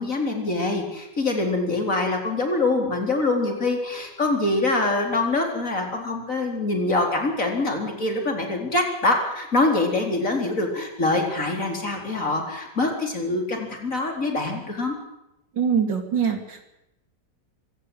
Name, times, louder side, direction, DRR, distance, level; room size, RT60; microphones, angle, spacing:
voice 1, 0.0-14.9, left 2 dB, 45° left, 3 dB, 4.6 m, -24 dB
voice 2, 15.6-16.7, right 7 dB, 90° right, 6 dB, 3.5 m, -23 dB
25.0 x 16.0 x 8.0 m, 0.87 s
omnidirectional pair, 1.9 m